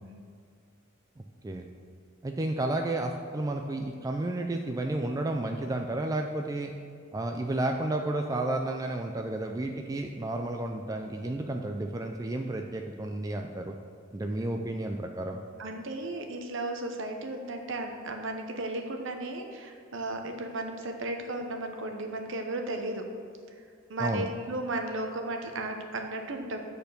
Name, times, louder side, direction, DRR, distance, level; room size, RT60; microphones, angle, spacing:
voice 1, 2.2-6.7 7.1-13.7 14.1-15.4 24.0-24.2, right 2 dB, 15° right, 3 dB, 0.3 m, -31 dB
voice 2, 15.6-23.0 23.9-26.6, right 2 dB, 60° right, 4 dB, 0.9 m, -35 dB
7.9 x 4.4 x 6.7 m, 2.2 s
head